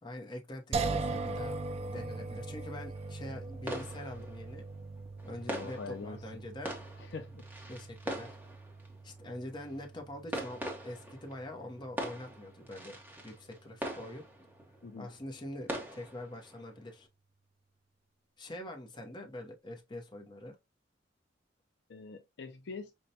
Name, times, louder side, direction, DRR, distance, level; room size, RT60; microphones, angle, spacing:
voice 1, 0.0-1.6 1.9-4.6 5.2-6.7 7.7-8.3 9.0-13.0 13.2-14.3 15.0-17.1 18.4-20.6, left 1 dB, 25° left, 0.8 m, -44 dB
sound 1, 0.7-13.8, right 3 dB, 35° right, 0.3 m, -41 dB
sound 2, 3.0-17.1, right 1 dB, 10° right, 0.9 m, -43 dB
voice 2, 5.5-6.2 7.0-7.4 14.8-15.1 21.9-22.9, left 4 dB, 60° left, 0.4 m, -43 dB
5.4 x 2.2 x 2.7 m
head